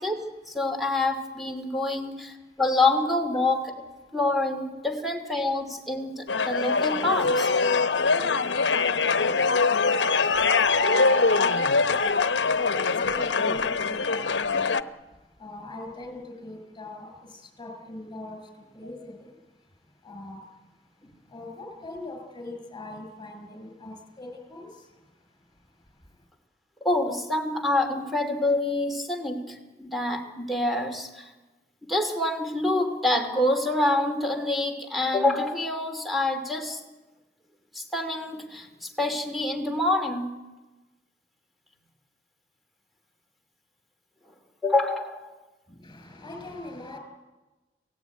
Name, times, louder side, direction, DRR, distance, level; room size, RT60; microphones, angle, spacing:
voice 1, 0.0-3.7 4.1-7.5 26.8-31.3 31.8-36.8 37.7-40.3 44.6-45.3, left 2 dB, ahead, 4 dB, 2.7 m, -26 dB
sound 1, 6.3-14.8, left 4 dB, 85° left, 0.9 m, -23 dB
voice 2, 12.7-14.7 15.4-17.1 17.6-18.4 18.7-19.3 20.0-20.5 21.3-24.7 45.8-47.0, left 2 dB, 25° left, 5 dB, 5.5 m, -41 dB
29.5 x 17.0 x 9.5 m, 1.2 s
head